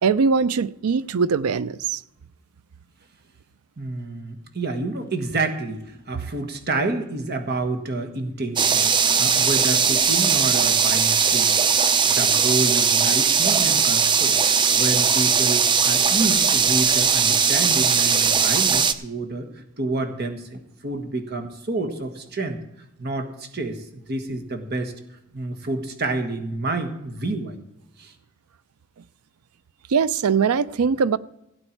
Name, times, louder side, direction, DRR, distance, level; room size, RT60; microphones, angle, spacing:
voice 1, 0.0-2.0 29.9-31.2, right 5 dB, 85° right, 0.5 m, -21 dB
voice 2, 3.8-11.5 12.1-22.6 23.0-24.9 25.3-27.6 28.0-28.1, right 2 dB, 50° right, 1.5 m, -29 dB
sound 1, 8.6-18.9, right 6 dB, 20° right, 0.4 m, -19 dB
16.5 x 8.9 x 4.5 m
head